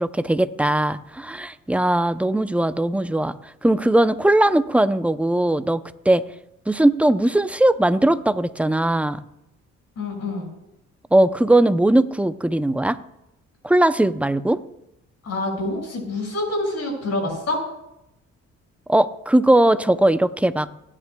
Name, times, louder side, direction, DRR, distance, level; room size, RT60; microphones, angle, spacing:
voice 1, 0.0-6.2 6.7-9.2 11.1-13.0 13.6-14.6 18.9-20.7, right 1 dB, 5° right, 12 dB, 0.5 m, -19 dB
voice 2, 10.0-10.5 15.2-17.6, left 2 dB, 60° left, 0 dB, 5.7 m, -26 dB
28.0 x 9.9 x 2.2 m, 0.87 s
cardioid pair, 90°, 30 cm